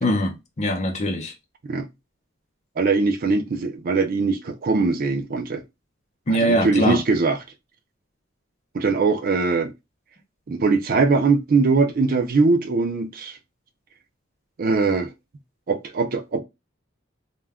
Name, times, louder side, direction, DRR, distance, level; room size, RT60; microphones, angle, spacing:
voice 1, 0.0-1.3 6.3-7.0, equal, 35° left, 0.6 m, -22 dB
voice 2, 2.8-5.6 6.3-7.4 8.7-9.7 10.5-13.4 14.6-15.1 15.7-16.4, right 4 dB, 45° right, 0.4 m, -21 dB
2.2 x 2.2 x 3.4 m
head